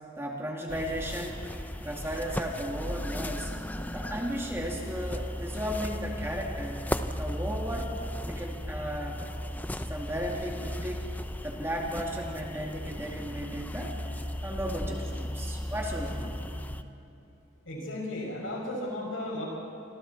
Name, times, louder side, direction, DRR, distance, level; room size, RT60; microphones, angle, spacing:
voice 1, 0.2-1.5 1.8-3.5 3.9-6.9 7.2-7.9 8.3-9.2 9.9-11.1 11.4-16.5, equal, 15° right, -1 dB, 2.4 m, -35 dB
sound 1, 0.7-16.8, left 1 dB, 10° left, 0.6 m, -36 dB
voice 2, 17.6-19.5, left 1 dB, 75° left, -1 dB, 6.7 m, -35 dB
29.0 x 25.5 x 4.4 m, 2.8 s
head